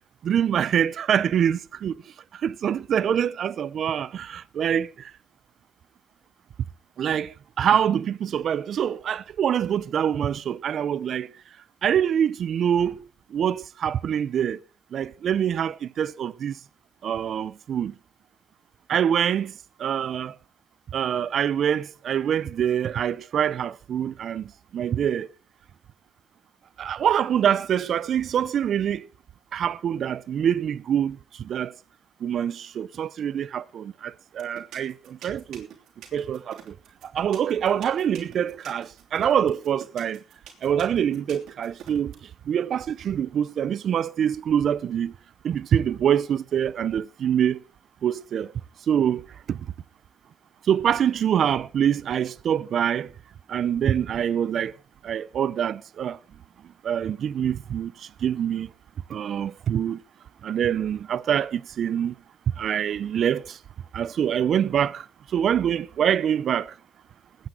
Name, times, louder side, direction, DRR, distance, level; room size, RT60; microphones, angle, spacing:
voice 1, 0.2-1.9 2.4-4.9 7.0-11.3 11.8-13.0 13.3-14.6 14.9-16.5 17.0-17.9 18.9-19.5 19.8-20.3 20.9-25.3 26.8-29.0 29.5-31.7 32.2-35.7 36.1-36.7 37.1-40.2 40.6-42.1 42.5-45.1 45.4-47.6 48.0-48.5 48.9-49.6 50.7-53.1 53.5-54.7 55.0-56.2 56.8-57.9 58.2-58.7 59.1-60.0 60.4-62.1 62.6-63.6 63.9-65.0 65.3-66.7, right 9 dB, 65° right, 0.5 m, -25 dB
sound 1, 34.4-42.2, right 10 dB, 80° right, 3.0 m, -44 dB
20.5 x 9.2 x 3.8 m
cardioid pair, 90°, 0 cm